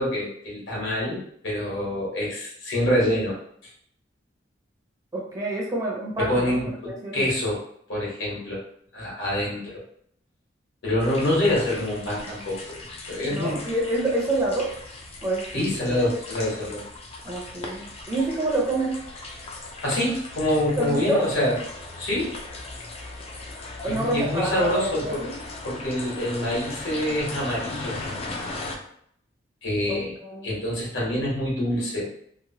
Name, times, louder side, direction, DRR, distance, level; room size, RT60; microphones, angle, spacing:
voice 1, 0.0-3.3 6.2-7.6 7.9-8.6 8.9-9.8 10.8-13.6 15.5-16.8 19.8-21.6 22.0-22.4 23.8-25.2 25.6-28.0 29.6-30.1 30.4-32.1, left 1 dB, 80° left, -5 dB, 1.3 m, -26 dB
voice 2, 5.1-6.6 6.9-7.3 13.3-14.7 15.2-16.1 17.2-19.0 20.8-21.3 23.8-25.3 29.9-30.6, right 2 dB, 20° right, -3 dB, 0.6 m, -27 dB
sound 1, 11.0-28.8, left 2 dB, 30° left, 0.4 m, -38 dB
3.0 x 2.1 x 2.8 m, 0.67 s
head